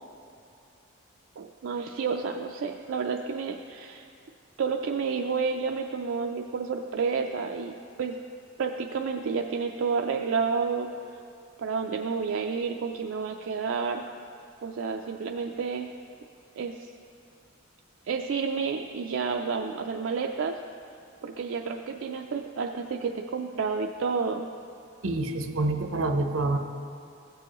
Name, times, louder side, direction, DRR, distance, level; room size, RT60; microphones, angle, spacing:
voice 1, 1.4-4.1 4.6-8.2 8.6-10.9 11.6-14.0 14.6-15.9 16.6-16.9 18.1-20.6 21.2-24.5, right 5 dB, 70° right, 2 dB, 0.4 m, -30 dB
voice 2, 25.0-26.6, right 2 dB, 90° right, 5 dB, 0.8 m, -27 dB
16.0 x 6.9 x 3.0 m, 2.5 s
head